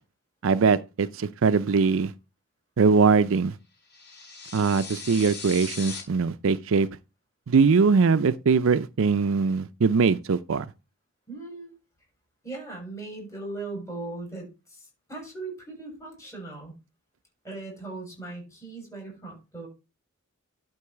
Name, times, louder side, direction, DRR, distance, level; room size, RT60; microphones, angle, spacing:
voice 1, 0.4-2.1 2.8-3.5 4.5-6.9 7.5-10.6, right 5 dB, 65° right, 0.5 m, -21 dB
sound 1, 3.9-6.0, left 5 dB, 50° left, 4.2 m, -38 dB
voice 2, 11.3-11.8 12.4-16.7 17.4-19.7, right 3 dB, 15° left, 6.6 m, -38 dB
11.5 x 4.7 x 4.6 m
head